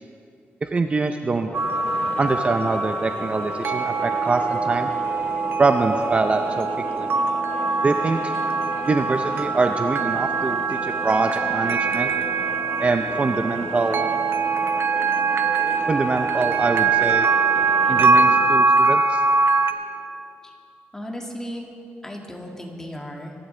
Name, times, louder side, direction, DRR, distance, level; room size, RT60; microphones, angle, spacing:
voice 1, 0.6-1.5 2.2-4.9 5.6-6.7 7.0-7.1 7.8-8.3 8.9-12.1 12.8-14.1 15.9-17.3 17.9-19.2, right 3 dB, 30° right, 6 dB, 0.6 m, -24 dB
sound 1, 1.3-18.8, left 3 dB, 35° left, 0.8 m, -37 dB
sound 2, 1.5-19.7, right 4 dB, 65° right, 0.8 m, -23 dB
sound 3, 3.9-20.1, right 1 dB, 45° right, 3.2 m, -40 dB
voice 2, 20.9-21.7 22.0-23.3, equal, 10° left, 0 dB, 2.0 m, -35 dB
23.0 x 11.5 x 3.3 m, 2.5 s
cardioid pair, 110°, 4 cm